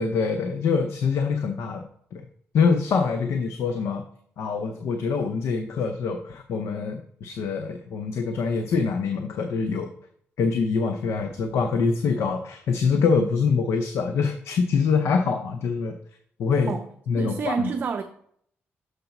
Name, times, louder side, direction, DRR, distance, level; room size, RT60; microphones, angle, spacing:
voice 1, 0.0-2.3 2.5-4.0 4.4-9.9 10.4-16.0 16.4-16.7 17.1-17.7, left 5 dB, 75° left, 0.6 m, -25 dB
voice 2, 17.2-18.0, right 5 dB, 40° right, 0.5 m, -28 dB
6.8 x 3.9 x 5.8 m
cardioid pair, 130°, 5 cm